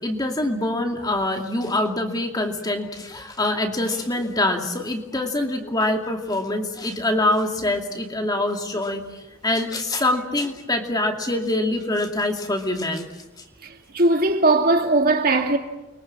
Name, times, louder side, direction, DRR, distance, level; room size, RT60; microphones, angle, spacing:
voice 1, 0.0-9.0 9.4-13.1, left 1 dB, 20° left, 2.5 m, -24 dB
voice 2, 13.6-15.6, right 2 dB, 45° right, 2.5 m, -19 dB
30.0 x 23.5 x 7.4 m
head